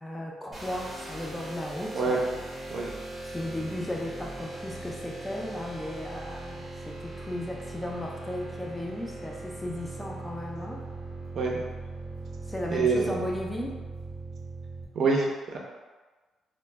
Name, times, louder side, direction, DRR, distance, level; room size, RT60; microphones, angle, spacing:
voice 1, 0.0-2.2 3.2-10.8 12.5-13.8, left 1 dB, 10° left, -1 dB, 0.4 m, -35 dB
sound 1, 0.5-14.8, right 2 dB, 20° right, 0.8 m, -40 dB
voice 2, 12.7-13.1 14.9-15.3 15.5-15.6, right 4 dB, 65° right, -1 dB, 0.5 m, -25 dB
2.1 x 2.0 x 3.3 m, 1.3 s
cardioid pair, 90°, 0 cm